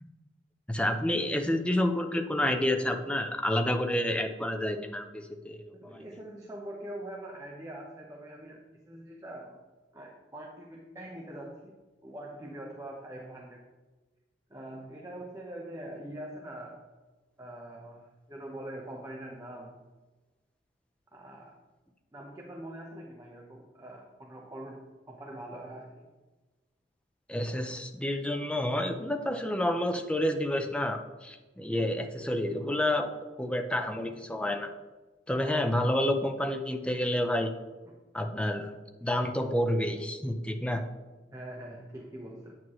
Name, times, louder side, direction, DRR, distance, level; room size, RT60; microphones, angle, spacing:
voice 1, 0.7-6.0 27.3-33.1 33.4-34.7 35.3-37.5 38.1-38.7 39.0-40.8, left 1 dB, 5° left, 5 dB, 0.6 m, -29 dB
voice 2, 5.8-9.6 9.9-13.6 14.5-16.8 17.4-19.8 21.1-21.6 22.1-26.1 31.7-31.9 34.5-34.6 41.3-42.5, right 1 dB, 20° right, -1 dB, 0.9 m, -43 dB
9.1 x 8.7 x 3.1 m, 1.2 s
head